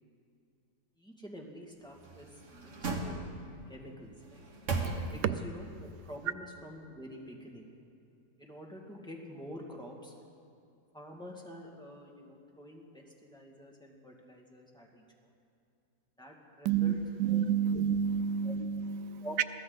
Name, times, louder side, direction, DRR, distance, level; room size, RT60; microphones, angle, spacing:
voice 1, 1.0-3.2 3.7-4.5 5.1-7.6 8.4-10.1 10.9-13.0 13.3-15.3 16.2-17.8 18.4-18.5 19.2-19.4, equal, 5° left, -1 dB, 2.1 m, -47 dB
sound 1, 1.9-3.7 4.2-5.5 5.9-6.0, right 3 dB, 50° right, 1.7 m, -37 dB
voice 2, 17.2-19.4, right 8 dB, 90° right, 13 dB, 1.2 m, -29 dB
22.5 x 15.0 x 4.0 m, 2.5 s
omnidirectional pair, 1.8 m